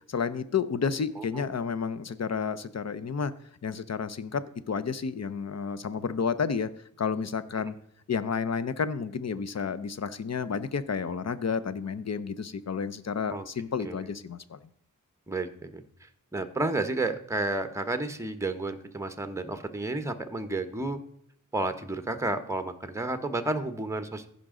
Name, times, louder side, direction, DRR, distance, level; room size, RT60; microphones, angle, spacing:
voice 1, 0.0-3.3 3.6-6.7 7.0-7.7 8.1-14.6, left 6 dB, 55° left, 14 dB, 0.7 m, -31 dB
voice 2, 15.3-15.8 16.3-21.0 21.5-24.3, right 2 dB, 10° right, 9 dB, 0.9 m, -31 dB
15.5 x 5.3 x 3.7 m, 0.69 s
wide cardioid pair, 65°, 32 cm